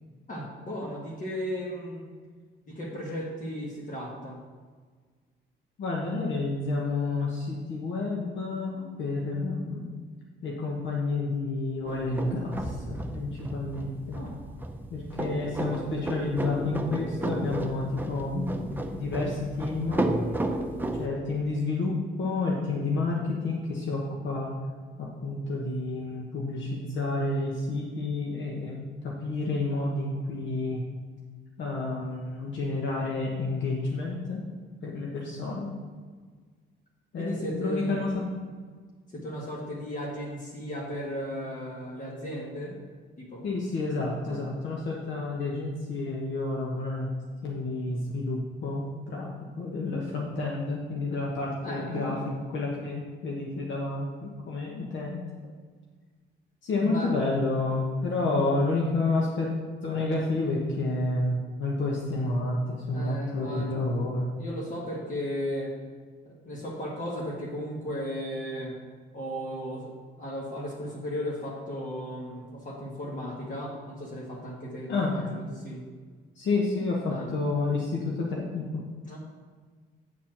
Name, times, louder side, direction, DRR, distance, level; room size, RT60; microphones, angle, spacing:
voice 1, 0.3-2.1 2.7-4.4 14.1-14.3 37.2-38.1 39.1-42.8 43.2-43.4 44.2-44.4 51.6-52.4 56.8-57.1 62.9-63.9 64.4-65.7 66.2-68.7 69.1-75.8 77.1-77.3 79.0-79.2, equal, 40° left, -3 dB, 1.7 m, -35 dB
voice 2, 5.8-9.9 10.4-14.2 14.9-20.0 21.0-24.6 25.0-30.8 31.6-34.4 34.8-35.7 37.1-38.1 43.4-47.1 47.4-49.3 49.6-52.2 52.5-55.2 56.6-59.5 59.8-64.3 74.9-75.1 76.4-78.6, left 3 dB, 70° left, -3 dB, 1.3 m, -30 dB
sound 1, 11.9-21.1, right 1 dB, 10° right, 0.7 m, -33 dB
8.3 x 4.3 x 6.0 m, 1.5 s
cardioid pair, 90°, 20 cm